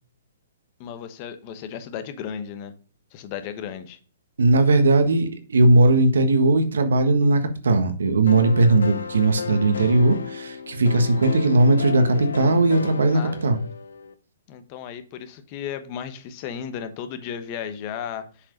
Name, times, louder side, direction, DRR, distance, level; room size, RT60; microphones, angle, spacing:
voice 1, 0.8-2.7 3.1-4.0 13.1-13.6 14.5-18.3, left 8 dB, 35° left, 1.0 m, -34 dB
voice 2, 4.4-13.6, right 2 dB, 85° right, 1.4 m, -18 dB
sound 1, 8.3-14.1, left 5 dB, 85° left, 0.8 m, -33 dB
7.2 x 4.7 x 5.2 m
hypercardioid pair, 140°, 0 cm